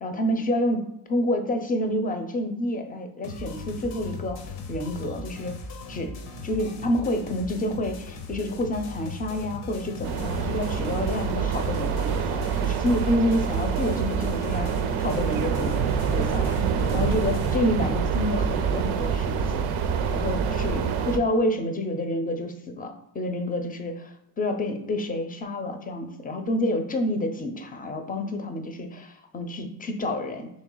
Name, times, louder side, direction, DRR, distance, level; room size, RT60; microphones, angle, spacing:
voice 1, 0.0-4.4 4.7-5.5 5.9-6.1 6.4-14.7 15.0-15.7 16.1-16.6 16.9-19.7 20.1-30.5, left 1 dB, 20° left, 6 dB, 0.5 m, -28 dB
sound 1, 3.2-17.6, left 3 dB, 85° left, 0.8 m, -38 dB
sound 2, 10.0-21.2, right 8 dB, 90° right, 0.5 m, -27 dB
sound 3, 15.5-20.9, right 5 dB, 40° right, 0.4 m, -30 dB
3.2 x 3.1 x 3.8 m, 0.82 s
cardioid pair, 100°, 48 cm